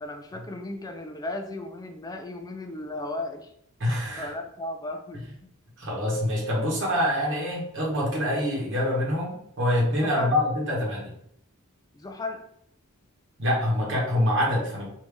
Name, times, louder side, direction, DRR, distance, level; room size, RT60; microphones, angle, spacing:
voice 1, 0.0-3.5 4.2-5.2 10.0-10.3 11.9-12.5, left 2 dB, 15° left, 5 dB, 0.4 m, -35 dB
voice 2, 3.8-4.3 5.8-11.1 13.4-14.9, left 1 dB, 60° right, -3 dB, 1.2 m, -25 dB
3.2 x 2.7 x 3.3 m, 0.71 s
head